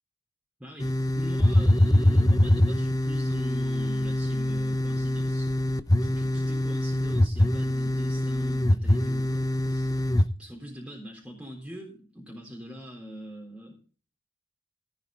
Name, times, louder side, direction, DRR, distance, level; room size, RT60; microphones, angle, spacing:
voice 1, 0.6-5.5 6.0-13.8, equal, 5° right, -2 dB, 3.8 m, -43 dB
sound 1, 0.8-10.2, left 1 dB, 20° left, 0.8 m, -24 dB
15.5 x 9.9 x 3.8 m, 0.38 s
head